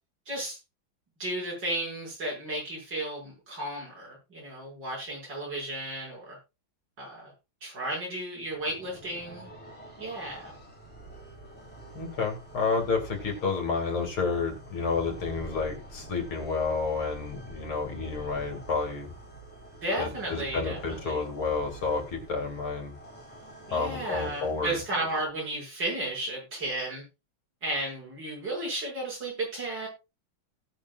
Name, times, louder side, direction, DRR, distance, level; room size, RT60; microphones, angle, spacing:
voice 1, 0.3-0.6 1.2-6.4 7.0-7.3 7.6-9.5 10.0-10.5 19.8-21.3 23.7-27.0 27.6-29.9, right 1 dB, 55° right, -4 dB, 7.6 m, -33 dB
sound 1, 8.4-25.4, right 2 dB, 5° left, 4.1 m, -47 dB
voice 2, 11.9-19.1 20.0-22.9 23.7-24.8, left 4 dB, 80° left, 3 dB, 3.5 m, -30 dB
18.0 x 7.0 x 2.5 m, 0.26 s
omnidirectional pair, 2.3 m